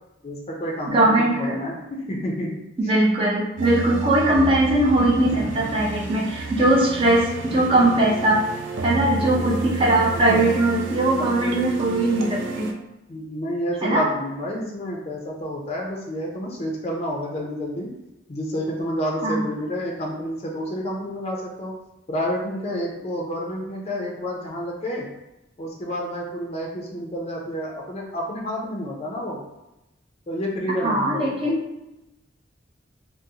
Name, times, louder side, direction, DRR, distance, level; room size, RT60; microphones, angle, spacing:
voice 1, 0.2-2.6 2.8-2.9 5.3-5.4 10.3-10.4 13.1-17.9 18.3-21.7 22.1-25.1 25.6-29.4 30.3-31.5, equal, 35° left, -1 dB, 0.5 m, -29 dB
voice 2, 0.9-1.6 2.9-8.4 8.8-12.7 13.8-14.1 19.2-19.4 30.8-31.6, right 1 dB, 30° right, -4 dB, 0.6 m, -20 dB
sound 1, 3.6-12.7, right 3 dB, 80° right, 0.4 m, -31 dB
3.8 x 2.0 x 2.7 m, 0.94 s
head